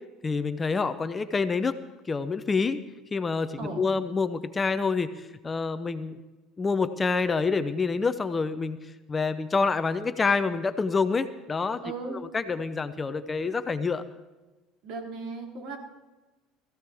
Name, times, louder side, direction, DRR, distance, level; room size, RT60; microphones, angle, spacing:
voice 1, 0.2-1.7 2.1-2.8 3.1-5.1 5.4-6.2 6.6-8.8 9.1-11.8 12.1-14.0, left 4 dB, 20° left, 11 dB, 0.6 m, -27 dB
voice 2, 11.8-12.2 14.8-15.8, right 3 dB, 60° right, 0 dB, 3.3 m, -36 dB
20.5 x 15.0 x 3.5 m, 1.2 s
cardioid pair, 130°, 0 cm